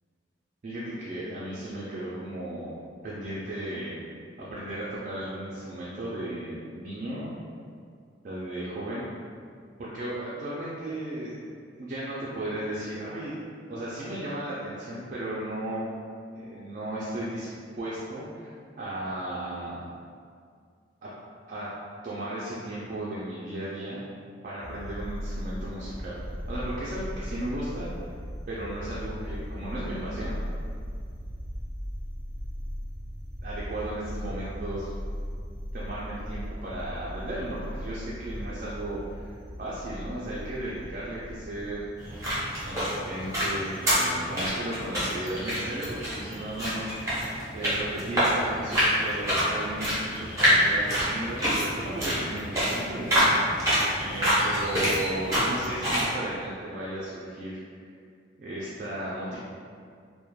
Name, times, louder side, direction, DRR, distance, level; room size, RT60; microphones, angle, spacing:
voice 1, 0.6-2.7 3.0-4.0 4.4-7.3 8.2-9.0 9.8-11.4 11.8-13.4 13.7-15.9 16.4-17.5 17.8-19.8 21.0-21.1 21.5-21.7 22.0-24.0 24.4-26.2 26.5-27.9 28.5-30.4 33.4-34.9 35.7-41.8 42.6-47.3 47.5-51.4 51.7-53.3 54.0-57.6 58.4-59.4, right 1 dB, 45° right, -8 dB, 0.3 m, -35 dB
sound 1, 24.6-43.8, equal, 60° left, 0.7 m, -38 dB
sound 2, 42.0-56.1, equal, 15° right, 0.7 m, -27 dB
3.0 x 2.1 x 2.2 m, 2.2 s
head